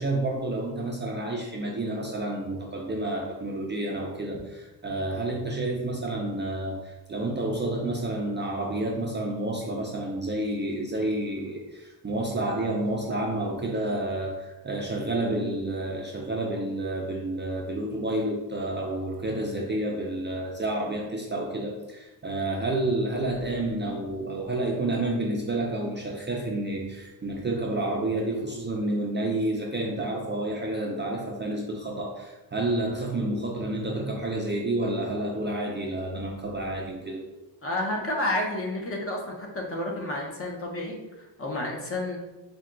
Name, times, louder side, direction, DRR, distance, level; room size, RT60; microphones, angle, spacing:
voice 1, 0.0-37.2, right 1 dB, 25° right, -2 dB, 0.5 m, -30 dB
voice 2, 37.6-42.2, left 1 dB, 30° left, 0 dB, 0.8 m, -30 dB
4.3 x 2.3 x 3.7 m, 1.0 s
cardioid pair, 115°, 46 cm